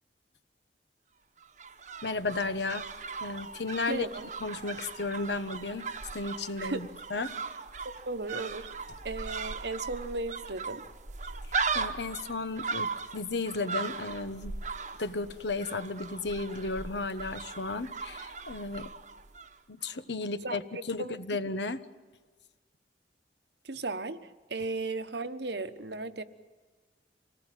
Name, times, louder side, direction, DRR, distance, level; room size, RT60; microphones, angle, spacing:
sound 1, 1.4-19.6 19.8-19.9, right 4 dB, 45° right, 1.1 m, -38 dB
voice 1, 2.0-2.8 3.2-4.1 4.4-5.9 6.1-7.4 11.7-14.5 15.0-18.9 19.7-20.6 20.9-21.8, left 3 dB, 75° left, 11 dB, 1.2 m, -34 dB
voice 2, 3.9-4.3 6.6-6.8 7.8-8.7 9.0-10.9 20.4-21.1 23.6-26.2, right 3 dB, 70° right, 9 dB, 1.2 m, -36 dB
26.5 x 18.5 x 9.1 m, 1.3 s
head